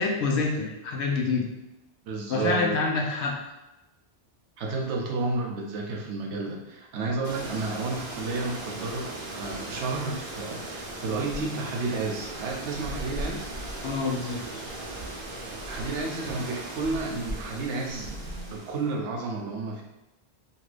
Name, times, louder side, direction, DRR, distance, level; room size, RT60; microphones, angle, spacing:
voice 1, 0.0-1.5 2.3-3.5 13.8-14.4, left 4 dB, 80° left, 0 dB, 0.9 m, -27 dB
voice 2, 2.1-3.1 4.6-13.5 15.7-19.8, right 3 dB, 85° right, 1 dB, 0.9 m, -31 dB
sound 1, 7.2-18.9, right 1 dB, 55° right, 0.7 m, -37 dB
2.7 x 2.5 x 3.3 m, 0.98 s
omnidirectional pair, 1.1 m